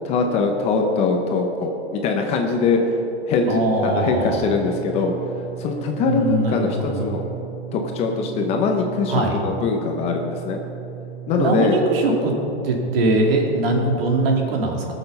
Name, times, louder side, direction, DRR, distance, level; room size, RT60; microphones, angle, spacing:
voice 1, 0.0-2.9 3.3-5.1 5.6-7.2 7.7-10.6 11.3-11.8, left 4 dB, 20° left, 2 dB, 0.7 m, -22 dB
voice 2, 3.5-4.4 6.1-7.0 9.1-9.4 11.4-12.3 12.6-14.9, right 2 dB, 60° right, 1 dB, 2.6 m, -21 dB
sound 1, 4.2-14.4, right 9 dB, 40° left, 2.5 m, -37 dB
17.5 x 7.1 x 5.5 m, 2.9 s
hypercardioid pair, 155°, 32 cm